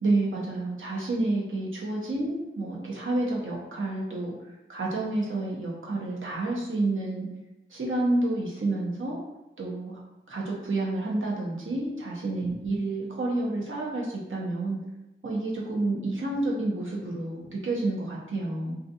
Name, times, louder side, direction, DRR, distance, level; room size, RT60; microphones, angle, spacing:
voice 1, 0.0-4.3 4.7-7.3 7.7-9.2 9.6-10.0 10.3-14.8 15.2-18.8, right 2 dB, 70° right, -3 dB, 0.7 m, -29 dB
2.4 x 2.4 x 2.7 m, 0.99 s
wide cardioid pair, 60°, 21 cm